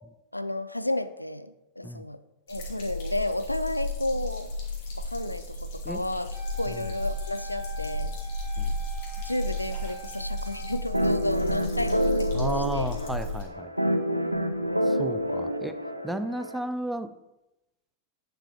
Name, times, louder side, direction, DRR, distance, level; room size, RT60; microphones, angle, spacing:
voice 1, 0.3-2.2 2.5-4.5 5.0-8.1 8.5-8.6 9.2-12.9 14.7-15.4, left 1 dB, 85° left, 12 dB, 0.4 m, -32 dB
sound 1, 2.5-13.4, left 1 dB, 50° left, 2.7 m, -33 dB
Wind instrument woodwind instrument, 6.3-11.4, right 1 dB, 20° right, 2.5 m, -45 dB
sound 2, 10.9-16.6, equal, 90° right, 0.6 m, -28 dB
voice 2, 12.3-13.7 15.0-15.7 16.0-17.1, right 1 dB, 5° right, 11 dB, 0.5 m, -33 dB
9.9 x 5.7 x 4.3 m, 0.95 s
figure-of-eight pair, 90°, 0 cm